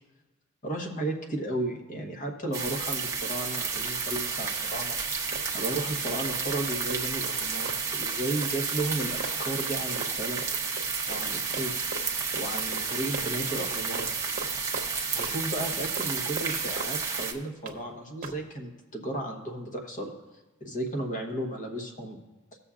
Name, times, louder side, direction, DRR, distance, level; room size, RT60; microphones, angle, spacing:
voice 1, 0.6-5.0 5.5-10.4 11.1-11.8 12.4-14.1 15.1-20.1 20.6-22.2, right 1 dB, 35° left, 1 dB, 1.2 m, -34 dB
sound 1, 2.5-17.3, right 5 dB, 15° right, 0.7 m, -31 dB
Run, 5.3-6.2 6.5-11.3 11.5-12.1 12.3-12.5 12.7-12.9 13.1-13.7 13.9-14.1 14.4-15.3 15.6-16.9 17.2-17.8 18.2-18.4, right 3 dB, 40° right, 0.9 m, -39 dB
17.5 x 7.0 x 2.5 m, 1.1 s
head